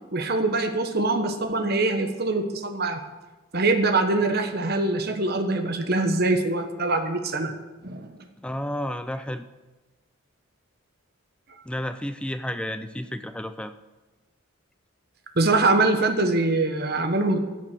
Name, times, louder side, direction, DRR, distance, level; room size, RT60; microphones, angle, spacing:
voice 1, 0.1-3.0 3.5-7.5 7.8-8.2 15.4-17.4, right 2 dB, 45° right, 6 dB, 1.1 m, -23 dB
voice 2, 8.4-9.4 11.6-13.7, left 1 dB, 5° left, 10 dB, 0.4 m, -31 dB
14.0 x 7.0 x 6.1 m, 1.2 s
head